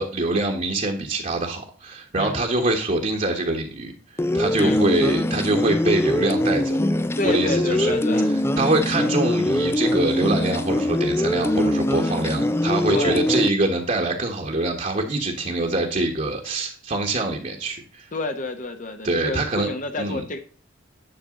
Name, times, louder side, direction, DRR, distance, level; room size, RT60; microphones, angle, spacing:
voice 1, 0.0-3.9 4.3-6.8 7.2-8.0 8.6-18.1 19.0-19.7 20.0-20.2, right 2 dB, 40° right, 0 dB, 1.4 m, -24 dB
sound 1, 4.2-13.5, left 1 dB, 15° left, 0.4 m, -22 dB
voice 2, 7.2-8.3 12.9-13.3 18.1-20.4, left 2 dB, 40° left, 6 dB, 1.0 m, -29 dB
10.5 x 6.4 x 3.8 m, 0.42 s
head